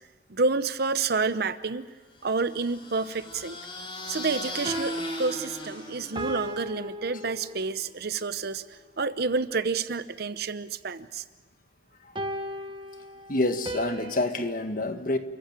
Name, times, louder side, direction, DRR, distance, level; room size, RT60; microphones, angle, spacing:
voice 1, 0.3-1.8 2.2-3.6 4.1-8.6 9.0-11.2, right 4 dB, 55° right, 13 dB, 0.8 m, -29 dB
sound 1, 2.2-6.7, left 2 dB, 30° left, 3.8 m, -39 dB
sound 2, 4.5-7.9 12.2-14.7, right 1 dB, 25° right, 1.3 m, -36 dB
voice 2, 13.3-15.2, left 2 dB, 50° left, 7 dB, 1.6 m, -27 dB
29.5 x 15.0 x 8.9 m, 1.3 s
head